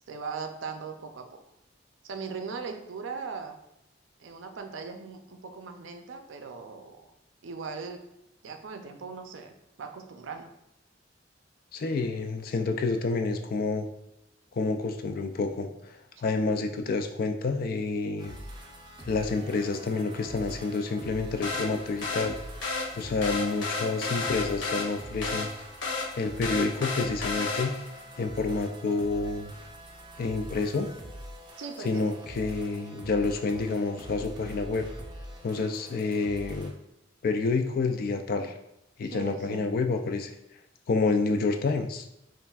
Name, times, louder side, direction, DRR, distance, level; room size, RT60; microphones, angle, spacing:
voice 1, 0.1-1.4 2.0-3.6 4.2-7.1 7.4-8.0 8.4-10.5 16.2-16.3 31.6-32.1 39.1-39.7, right 5 dB, 90° right, 6 dB, 0.5 m, -39 dB
voice 2, 11.7-13.9 14.5-18.4 19.0-22.4 23.0-25.5 26.2-27.7 28.2-29.5 30.2-30.9 31.8-34.8 35.4-36.7 37.2-38.5 39.0-40.3 40.9-42.0, left 3 dB, 50° left, 6 dB, 0.4 m, -28 dB
sound 1, 18.2-36.7, equal, 25° right, 0.5 m, -44 dB
sound 2, 21.4-28.0, left 3 dB, 75° left, 0.8 m, -33 dB
5.5 x 2.5 x 2.3 m, 0.84 s
head